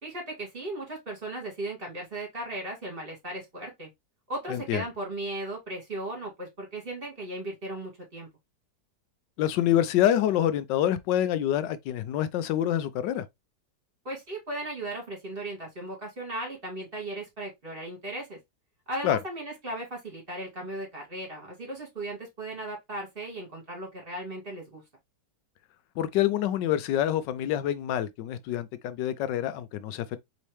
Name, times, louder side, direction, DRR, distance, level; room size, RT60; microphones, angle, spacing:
voice 1, 0.0-3.9 4.3-8.3 14.0-18.4 18.9-24.8, right 1 dB, 30° right, 2.5 m, -37 dB
voice 2, 4.5-4.8 9.4-13.3 19.0-19.2 26.0-30.2, left 11 dB, 85° left, 1.3 m, -26 dB
4.2 x 3.6 x 3.2 m
omnidirectional pair, 1.9 m